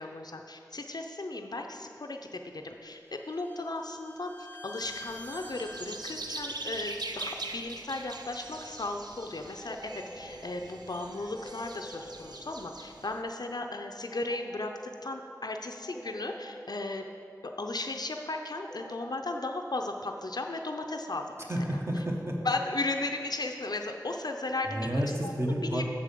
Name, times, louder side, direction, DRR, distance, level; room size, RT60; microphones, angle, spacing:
voice 1, 0.0-4.3 4.6-14.7 15.0-17.0 17.6-21.5 22.4-24.9 25.2-25.8, left 2 dB, 65° left, 3 dB, 0.5 m, -35 dB
Bowed string instrument, 2.7-6.5, left 1 dB, 25° left, 0.6 m, -48 dB
sound 1, 4.8-13.2, right 2 dB, 70° right, 0.5 m, -42 dB
sound 2, 9.6-10.4 11.3-12.1 14.1-14.9 15.8-16.6 18.6-19.4, equal, ahead, 1.0 m, -46 dB
voice 2, 21.5-22.4 24.7-25.8, equal, 35° right, 0 dB, 1.1 m, -30 dB
6.7 x 4.9 x 6.7 m, 2.5 s
wide cardioid pair, 55°, 7 cm